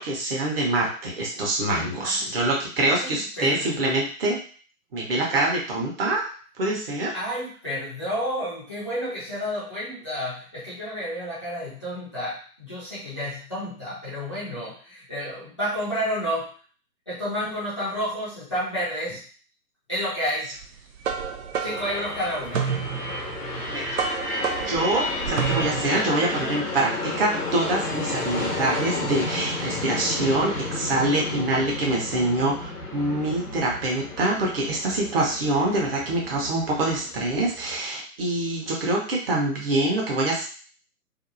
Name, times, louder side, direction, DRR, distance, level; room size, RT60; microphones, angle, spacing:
voice 1, 0.0-4.4 4.9-6.3 6.6-7.2 23.7-24.0 24.6-40.4, right 2 dB, 40° right, -2 dB, 0.9 m, -25 dB
voice 2, 2.8-3.8 7.1-16.5 17.1-19.2 19.9-20.5 21.6-22.7, equal, 20° left, -11 dB, 0.4 m, -30 dB
sound 1, 20.6-26.1, right 7 dB, 60° right, 0.5 m, -30 dB
sound 2, 21.6-37.8, left 2 dB, 90° left, 0.9 m, -32 dB
2.7 x 2.0 x 2.6 m, 0.42 s
figure-of-eight pair, 125°, 45 cm